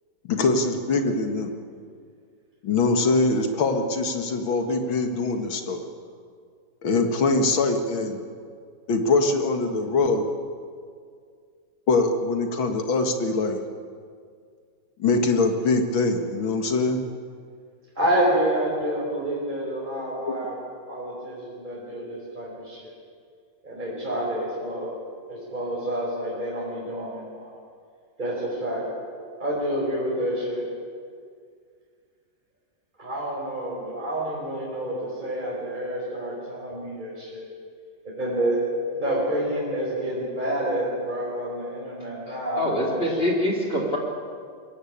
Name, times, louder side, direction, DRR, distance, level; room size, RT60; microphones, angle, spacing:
voice 1, 0.2-1.5 2.6-5.8 6.8-8.2 8.9-10.3 11.9-13.6 15.0-17.0 20.3-20.4, left 3 dB, 90° left, 5 dB, 2.6 m, -23 dB
voice 2, 17.9-20.6 20.9-22.9 23.6-24.9 25.3-27.5 28.2-28.9 29.4-30.7 33.0-37.5 38.1-38.6 38.9-43.3, right 1 dB, 25° right, -5 dB, 4.9 m, -28 dB
voice 3, 42.3-44.0, left 1 dB, 30° left, 0 dB, 2.8 m, -25 dB
22.5 x 17.0 x 8.8 m, 2.1 s
omnidirectional pair, 2.1 m